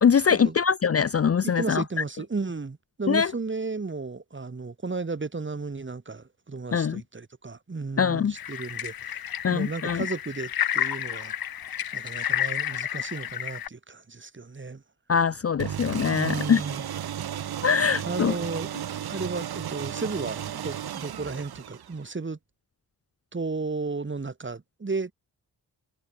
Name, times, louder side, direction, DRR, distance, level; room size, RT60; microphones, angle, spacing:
voice 1, 0.0-1.8 3.1-3.3 6.7-7.0 8.0-8.3 9.4-10.0 15.1-16.6 17.6-18.3, left 7 dB, 40° left, 0.6 m, -23 dB
voice 2, 1.4-9.2 9.5-11.3 11.9-14.8 16.1-16.9 18.0-18.7 19.1-22.4 23.3-25.1, right 4 dB, 30° right, 4.0 m, -34 dB
sound 1, 8.4-13.7, left 10 dB, 70° left, 0.9 m, -31 dB
sound 2, 15.6-22.1, right 10 dB, 80° right, 1.0 m, -34 dB
wide cardioid pair, 145°, 37 cm